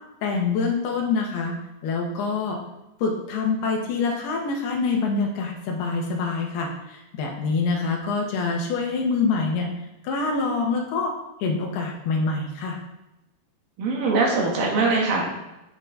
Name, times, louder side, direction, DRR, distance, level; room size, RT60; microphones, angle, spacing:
voice 1, 0.2-2.6 3.0-9.7 10.0-11.2 11.4-12.8, left 4 dB, 75° left, 1 dB, 3.2 m, -25 dB
voice 2, 13.8-15.2, right 3 dB, 65° right, -1 dB, 2.9 m, -22 dB
9.4 x 8.2 x 3.9 m, 0.97 s
omnidirectional pair, 4.8 m